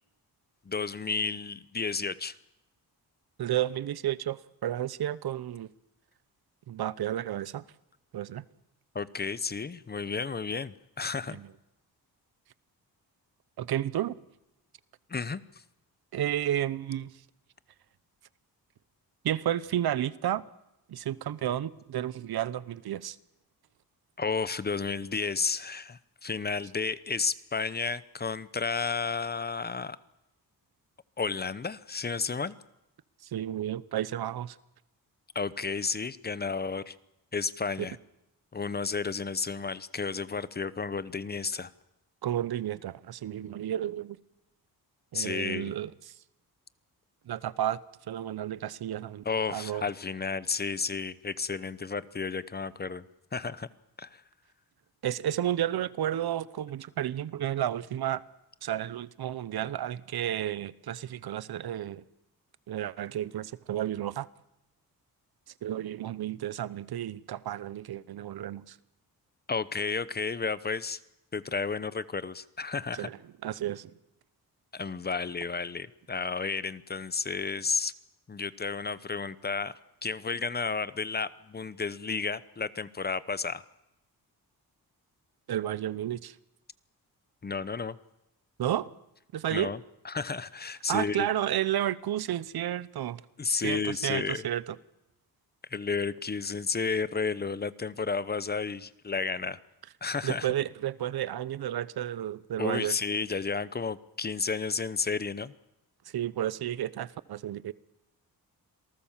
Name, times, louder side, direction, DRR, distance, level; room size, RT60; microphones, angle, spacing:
voice 1, 0.7-2.4 8.9-11.4 15.1-15.4 24.2-30.0 31.2-32.6 35.3-37.0 37.3-38.0 38.5-41.7 45.1-45.8 49.2-53.1 53.3-53.7 54.0-54.2 69.5-71.0 71.3-73.1 74.7-77.9 78.3-79.7 80.0-83.6 87.4-88.0 89.5-89.8 90.0-91.3 93.4-94.5 95.7-99.6 100.0-100.5 102.6-105.5, left 4 dB, 25° left, 0.8 m, -32 dB
voice 2, 3.4-5.7 6.7-7.6 8.1-8.4 11.3-11.5 13.6-14.2 16.1-17.1 19.2-20.4 20.9-23.2 33.3-34.6 42.2-44.2 45.1-45.9 47.3-47.8 48.1-49.2 49.5-49.8 55.0-58.2 58.6-62.0 62.7-64.3 65.6-68.8 72.9-73.2 73.4-73.9 85.5-86.3 88.6-88.9 89.3-89.7 90.9-93.2 93.6-94.6 100.2-103.0 106.1-107.7, right 11 dB, 75° right, 0.9 m, -32 dB
27.0 x 18.5 x 7.4 m
wide cardioid pair, 145°, 37 cm